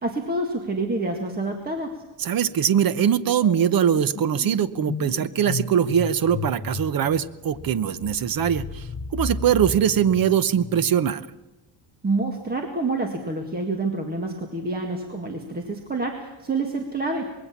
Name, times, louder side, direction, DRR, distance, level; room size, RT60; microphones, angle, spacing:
voice 1, 0.0-2.0 12.0-17.3, right 2 dB, 20° right, 3 dB, 1.9 m, -27 dB
sound 1, 1.8-2.1 2.4-11.2, left 5 dB, 30° left, 1.0 m, -35 dB
voice 2, 2.2-8.9 9.1-11.3, right 9 dB, 45° right, 15 dB, 0.9 m, -22 dB
25.0 x 21.0 x 7.3 m, 1.0 s
cardioid pair, 175°, 48 cm